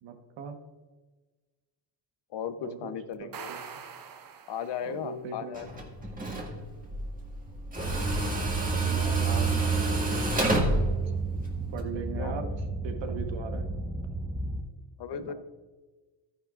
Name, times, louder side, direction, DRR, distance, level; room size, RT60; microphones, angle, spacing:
voice 1, 0.0-0.7 2.6-2.9 3.2-3.7 4.8-5.7 8.8-11.2 11.7-12.5 12.8-13.7 15.1-15.3, right 5 dB, 80° right, 5 dB, 1.3 m, -40 dB
voice 2, 2.3-3.5 4.5-5.7 12.2-12.3 15.0-15.3, left 8 dB, 70° left, 11 dB, 0.8 m, -36 dB
sound 1, 3.1-5.1, right 6 dB, 50° right, 1.0 m, -44 dB
Tools, 5.5-11.8, right 1 dB, 20° right, 1.7 m, -31 dB
sound 2, 7.8-14.6, right 4 dB, ahead, 1.3 m, -31 dB
13.0 x 9.8 x 2.5 m, 1.3 s
cardioid pair, 115°, 44 cm